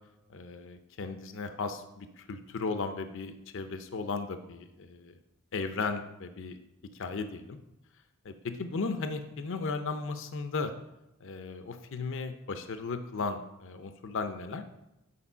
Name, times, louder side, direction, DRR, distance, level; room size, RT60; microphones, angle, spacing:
voice 1, 0.3-5.1 5.5-6.6 7.0-7.6 8.2-10.7 11.2-14.6, left 4 dB, 60° left, 8 dB, 0.6 m, -36 dB
8.5 x 4.5 x 5.5 m, 0.91 s
head